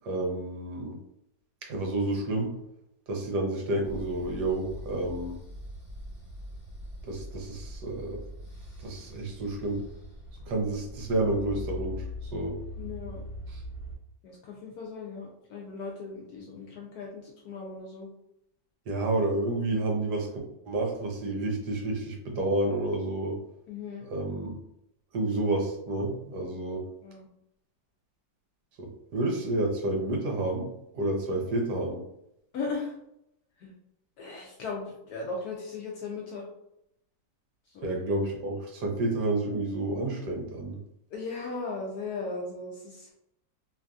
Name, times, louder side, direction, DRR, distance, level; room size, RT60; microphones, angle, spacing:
voice 1, 0.0-0.9 1.7-2.6 3.1-5.3 7.0-8.2 8.8-9.8 10.5-12.5 13.5-13.6 18.9-20.3 20.7-23.4 24.0-24.5 25.1-26.8 28.8-32.0 37.8-40.8, right 2 dB, 65° right, 0 dB, 1.2 m, -30 dB
sound 1, 3.8-14.0, left 1 dB, 20° right, 1.2 m, -42 dB
voice 2, 12.8-13.2 14.2-18.1 23.7-24.1 26.6-26.7 27.0-27.3 32.5-33.0 33.6-33.7 34.2-36.5 37.7-38.0 41.1-43.1, left 4 dB, 75° left, -1 dB, 0.9 m, -37 dB
3.2 x 2.5 x 2.3 m, 0.78 s
omnidirectional pair, 2.1 m